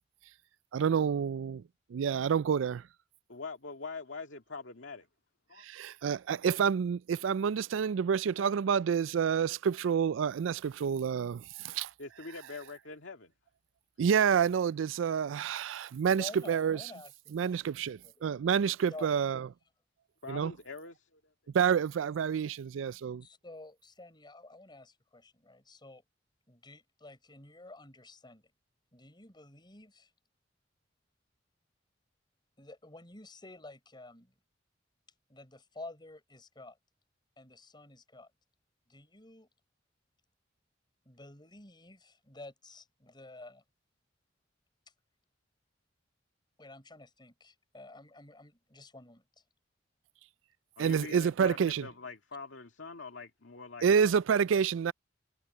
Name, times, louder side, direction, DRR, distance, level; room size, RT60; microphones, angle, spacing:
voice 1, 0.7-1.6 1.9-2.8 5.6-11.9 14.0-16.8 17.3-19.5 20.3-20.5 21.5-23.2 50.8-51.9 53.8-54.9, right 7 dB, 85° right, 0.4 m, -28 dB
voice 2, 3.3-5.1 5.5-5.6 12.0-13.3 20.2-21.2 50.8-54.1, left 4 dB, 75° left, 2.2 m, -44 dB
voice 3, 16.1-18.4 18.9-19.1 23.2-26.0 26.5-28.4 28.9-30.1 32.6-34.3 35.3-36.8 37.4-38.3 38.9-39.5 41.1-43.6 46.6-49.2, left 2 dB, 25° left, 5.6 m, -50 dB
head